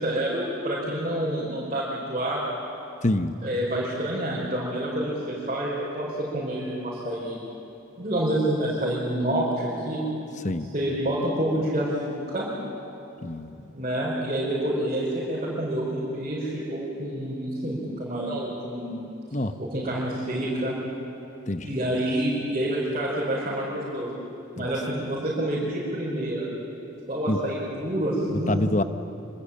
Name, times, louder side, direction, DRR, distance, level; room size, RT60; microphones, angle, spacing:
voice 1, 0.0-2.4 3.4-7.4 8.0-10.0 10.6-12.5 13.7-19.0 19.6-20.8 21.6-24.1 24.6-26.5 27.1-28.7, right 1 dB, 35° right, -6 dB, 5.2 m, -28 dB
voice 2, 3.0-3.3 10.4-10.7 13.2-13.5 19.3-19.5 21.5-21.6 27.3-27.4 28.5-28.8, left 1 dB, 35° left, 9 dB, 1.1 m, -25 dB
26.5 x 25.0 x 8.8 m, 3.0 s
head